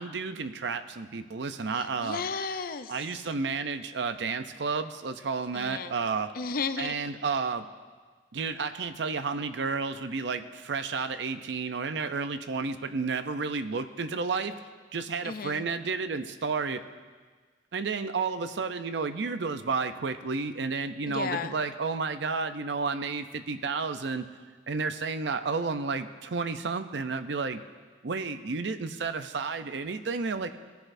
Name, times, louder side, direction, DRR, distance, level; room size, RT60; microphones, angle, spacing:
voice 1, 0.0-2.2 2.9-6.3 6.8-7.7 8.3-14.6 14.9-16.8 17.7-24.3 24.7-27.6 28.0-30.5, right 4 dB, 75° right, 9 dB, 0.6 m, -31 dB
voice 2, 1.7-2.9 5.5-5.9 6.3-7.0 15.2-15.6 21.1-21.5, left 5 dB, 55° left, 10 dB, 0.5 m, -33 dB
20.0 x 10.5 x 2.6 m, 1.5 s
head